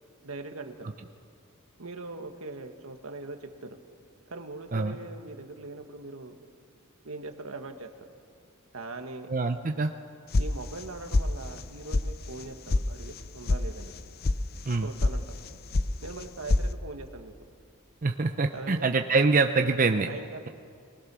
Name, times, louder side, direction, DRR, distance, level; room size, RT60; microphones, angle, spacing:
voice 1, 0.2-0.9 1.8-3.8 4.3-6.4 7.0-7.9 8.7-9.3 10.4-13.9 14.8-15.3 16.0-17.3 18.5-18.9 20.1-20.5, right 2 dB, 70° right, 6 dB, 1.5 m, -41 dB
voice 2, 9.3-9.9 14.7-14.9 18.0-20.1, right 3 dB, 40° right, 5 dB, 0.6 m, -25 dB
sound 1, 10.3-10.9 11.1-11.6 11.9-12.0 12.4-12.8 13.1-13.6 13.9-14.4 14.7-15.1 15.4-15.9 16.2-16.7, left 2 dB, 45° left, 0.6 m, -25 dB
24.0 x 19.0 x 6.2 m, 2.2 s
head